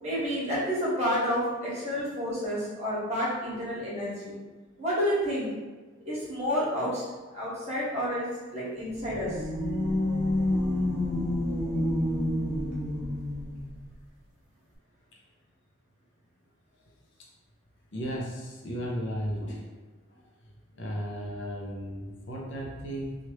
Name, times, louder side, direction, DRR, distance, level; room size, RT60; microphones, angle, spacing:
voice 1, 0.0-4.4 4.8-5.5 6.0-7.0 7.3-8.3 8.5-9.4, equal, 35° right, -8 dB, 1.3 m, -29 dB
sound 1, 8.9-13.7, left 1 dB, 5° right, 0.8 m, -28 dB
voice 2, 17.9-19.7 20.1-20.2 20.8-23.2, equal, 60° left, -2 dB, 0.6 m, -35 dB
3.1 x 2.4 x 2.9 m, 1.3 s
head